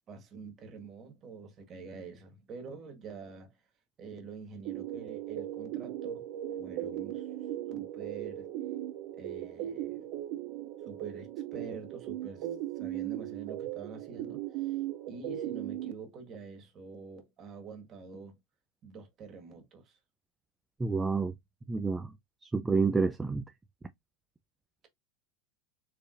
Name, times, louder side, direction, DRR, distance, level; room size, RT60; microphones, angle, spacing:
voice 1, 0.1-3.6 4.0-6.3 6.6-7.3 7.7-8.5 9.2-10.1 10.8-12.5 12.8-14.8 15.1-18.4 18.8-20.0, right 4 dB, 30° right, 1.6 m, -46 dB
sound 1, 4.7-15.9, right 13 dB, 55° right, 0.7 m, -38 dB
voice 2, 20.8-21.3 21.7-22.1 22.5-23.4, right 4 dB, 10° right, 0.4 m, -28 dB
4.6 x 3.3 x 2.5 m
supercardioid pair, 135°, 0 cm